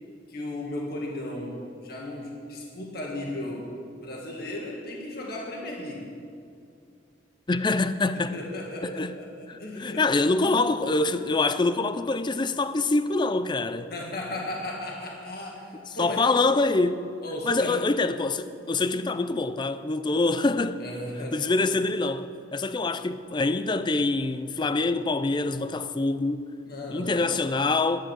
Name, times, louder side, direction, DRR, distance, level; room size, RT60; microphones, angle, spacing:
voice 1, 0.3-3.7 4.0-6.1 8.1-10.1 10.3-11.0 13.9-16.3 17.2-17.9 20.8-21.4 26.6-27.4, left 1 dB, 55° left, 2.0 m, -36 dB
voice 2, 7.5-8.3 8.8-9.2 9.5-13.9 16.0-17.2 17.5-20.8 21.3-26.5 26.9-28.0, left 3 dB, 25° left, 0.4 m, -25 dB
11.5 x 10.5 x 7.3 m
head